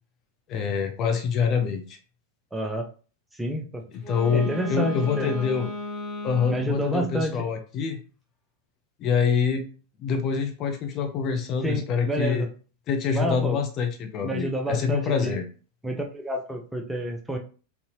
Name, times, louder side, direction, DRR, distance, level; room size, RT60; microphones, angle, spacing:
voice 1, 0.5-2.0 3.9-5.7 6.2-8.0 9.0-9.6 10.0-12.5 12.9-15.4, left 6 dB, 35° left, 5 dB, 0.6 m, -26 dB
voice 2, 2.5-2.9 3.3-3.8 4.3-5.5 6.5-7.4 11.6-12.5 13.1-13.6 14.2-15.4 15.8-17.4, right 1 dB, 5° right, 1 dB, 0.7 m, -29 dB
Wind instrument woodwind instrument, 3.9-6.9, left 2 dB, 15° left, 1.1 m, -35 dB
3.9 x 2.7 x 2.9 m, 0.37 s
figure-of-eight pair, 90°, 0 cm